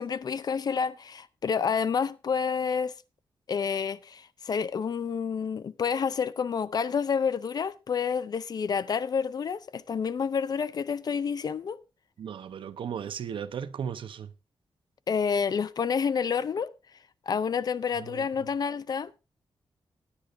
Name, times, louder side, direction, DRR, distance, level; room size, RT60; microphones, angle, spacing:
voice 1, 0.0-3.0 3.5-11.8 15.1-16.7 17.3-19.1, left 6 dB, 50° left, 0.5 m, -29 dB
voice 2, 12.2-14.3 18.0-18.3, right 8 dB, 85° right, 0.8 m, -36 dB
17.0 x 9.8 x 2.6 m
wide cardioid pair, 155°, 9 cm